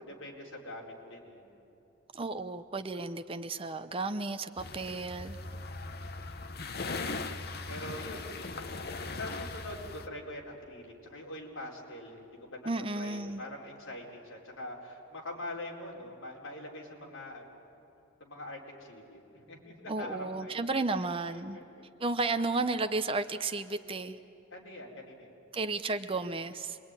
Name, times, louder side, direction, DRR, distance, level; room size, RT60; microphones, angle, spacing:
voice 1, 0.0-1.6 5.3-5.5 7.7-8.7 9.0-17.6 18.2-20.7 21.3-21.8 24.5-25.3, left 1 dB, 70° left, -1 dB, 4.3 m, -44 dB
voice 2, 2.1-5.4 12.7-13.4 19.9-21.6 22.0-24.2 25.5-26.8, right 3 dB, 25° right, 10 dB, 0.7 m, -33 dB
sound 1, 4.6-10.1, left 3 dB, 45° left, 0.9 m, -39 dB
26.5 x 22.0 x 9.7 m, 2.7 s
head